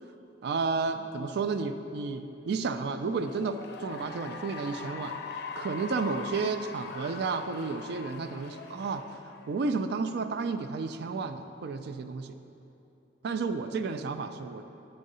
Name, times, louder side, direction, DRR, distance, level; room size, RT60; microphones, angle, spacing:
voice 1, 0.4-5.2 5.6-9.1 9.5-12.3 13.2-14.6, right 4 dB, 60° right, 9 dB, 0.3 m, -32 dB
Cheering / Applause, 3.1-9.8, left 4 dB, 65° left, 0.5 m, -42 dB
7.1 x 3.7 x 5.4 m, 2.8 s
head